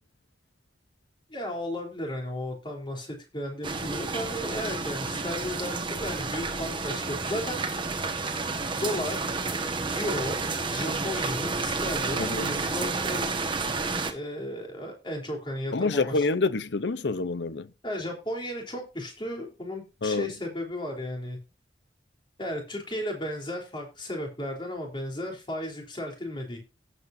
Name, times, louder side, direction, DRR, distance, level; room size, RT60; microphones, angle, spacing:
voice 1, 1.3-7.6 8.8-9.4 9.9-10.4 10.7-13.3 14.1-16.2 17.8-21.4 22.4-26.6, left 1 dB, 30° left, 3.6 m, -34 dB
sound 1, 3.6-14.1, right 3 dB, 30° right, 1.4 m, -30 dB
voice 2, 12.2-12.5 15.7-17.7 20.0-20.3, left 3 dB, 85° left, 0.7 m, -27 dB
17.0 x 8.2 x 2.7 m
head